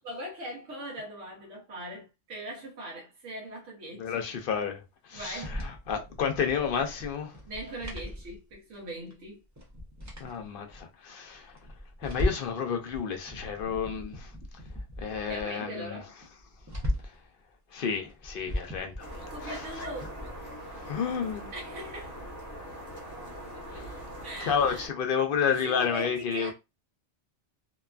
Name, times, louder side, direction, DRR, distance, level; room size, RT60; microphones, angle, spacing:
voice 1, 0.0-4.3 5.1-5.6 7.5-9.4 15.3-16.1 19.3-20.2 21.5-22.2 23.5-23.9 24.2-24.8 25.5-26.5, right 1 dB, 85° right, 1.2 m, -40 dB
voice 2, 4.0-7.4 10.2-11.5 12.0-14.3 15.0-16.0 17.0-17.1 17.7-19.1 19.4-19.8 20.6-21.5 23.7-24.0 24.4-26.5, left 7 dB, 60° left, 0.7 m, -31 dB
sound 1, 5.2-8.9 9.1-9.2 9.6-10.8 11.3-12.6 12.9-15.5 15.8-15.9 16.2-17.3 17.9-20.4, left 1 dB, 20° right, 0.4 m, -37 dB
sound 2, 19.0-24.9, right 1 dB, 15° left, 0.8 m, -42 dB
2.8 x 2.3 x 2.3 m
omnidirectional pair, 1.2 m